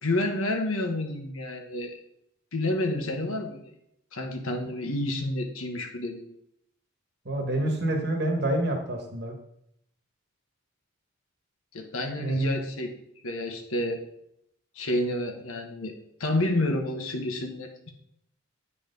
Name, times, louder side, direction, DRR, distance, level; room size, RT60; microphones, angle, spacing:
voice 1, 0.0-2.0 2.5-3.7 4.1-6.3 11.7-12.9 13.2-14.0 14.7-15.9 16.2-17.9, left 1 dB, 80° left, 4 dB, 1.3 m, -29 dB
voice 2, 7.2-9.3 12.2-12.5, right 1 dB, 50° right, 3 dB, 1.4 m, -27 dB
8.7 x 4.3 x 5.3 m, 0.75 s
head